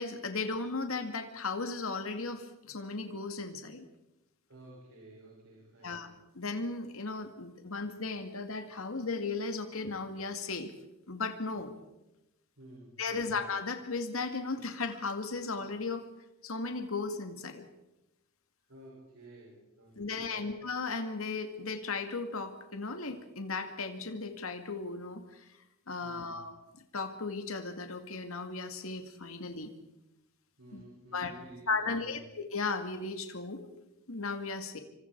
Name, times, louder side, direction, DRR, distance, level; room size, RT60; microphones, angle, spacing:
voice 1, 0.0-3.9 5.8-6.1 6.3-10.7 11.1-11.7 13.0-16.0 16.4-17.7 20.0-25.5 25.9-26.5 26.9-29.7 30.7-30.8 31.1-31.3 31.7-33.7 34.1-34.8, left 4 dB, 75° left, 6 dB, 2.2 m, -36 dB
voice 2, 4.5-6.1 12.6-13.4 18.7-20.5 26.0-26.5 30.6-32.2, right 1 dB, 85° right, -3 dB, 6.7 m, -53 dB
27.0 x 25.0 x 4.7 m, 0.93 s
head